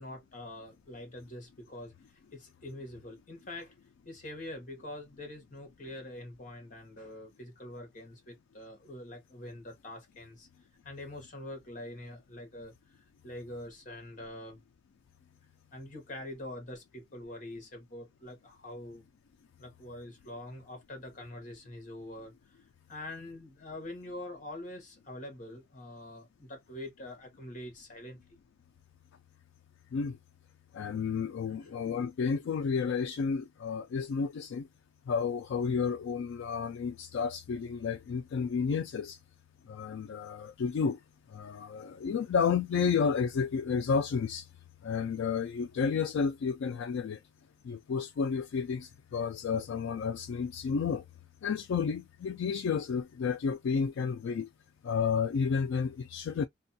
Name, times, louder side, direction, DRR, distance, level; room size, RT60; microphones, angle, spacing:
voice 1, 0.0-3.7 4.0-10.5 10.8-14.6 15.7-19.0 19.6-28.2 31.5-31.7, left 1 dB, 40° left, 1.1 m, -45 dB
voice 2, 30.7-34.7 35.1-39.2 39.6-41.0 41.3-47.2 47.6-51.0 51.4-54.5 54.8-56.4, left 6 dB, 85° left, 0.3 m, -31 dB
2.5 x 2.3 x 2.6 m
head